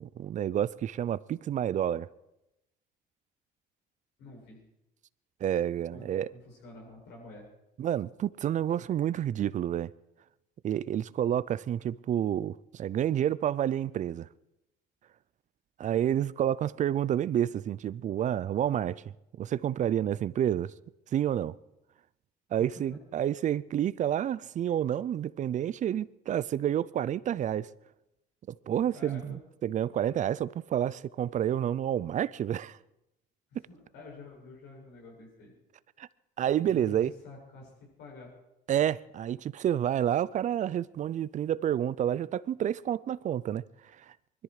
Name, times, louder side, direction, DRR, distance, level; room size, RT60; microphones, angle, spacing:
voice 1, 0.0-2.1 5.4-6.3 7.8-9.9 10.6-14.3 15.8-19.0 19.4-20.7 21.1-21.6 22.5-27.7 28.5-32.8 36.0-36.1 36.4-37.1 38.7-44.1, right 10 dB, 45° right, 0.5 m, -29 dB
voice 2, 4.2-4.6 5.9-7.5 22.7-23.0 28.9-29.4 33.5-35.5 36.6-38.3, left 2 dB, 85° left, 8.0 m, -49 dB
21.0 x 13.5 x 4.9 m
cardioid pair, 110°, 17 cm